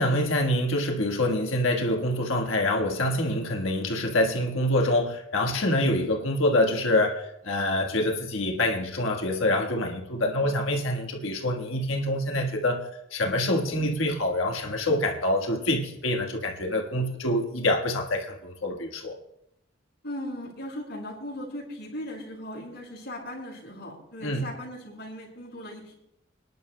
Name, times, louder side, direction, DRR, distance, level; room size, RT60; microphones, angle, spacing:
voice 1, 0.0-19.1 24.2-24.5, left 1 dB, 80° left, 2 dB, 1.4 m, -26 dB
voice 2, 10.2-10.5 20.0-25.9, left 1 dB, 55° left, -2 dB, 5.2 m, -38 dB
27.0 x 11.0 x 2.2 m, 0.80 s
head